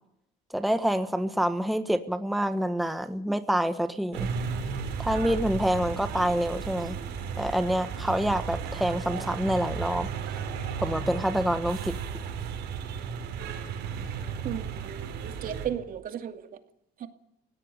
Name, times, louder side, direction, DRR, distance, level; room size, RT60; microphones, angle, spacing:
voice 1, 0.5-4.3 5.0-7.0 7.4-10.1 10.8-11.9, equal, ahead, 9 dB, 1.4 m, -27 dB
sound 1, 4.1-15.7, right 6 dB, 85° right, 5.4 m, -34 dB
voice 2, 14.4-16.4 17.0-17.1, right 9 dB, 55° right, 7 dB, 2.5 m, -35 dB
19.0 x 17.0 x 9.2 m, 0.73 s
cardioid pair, 110°, 17 cm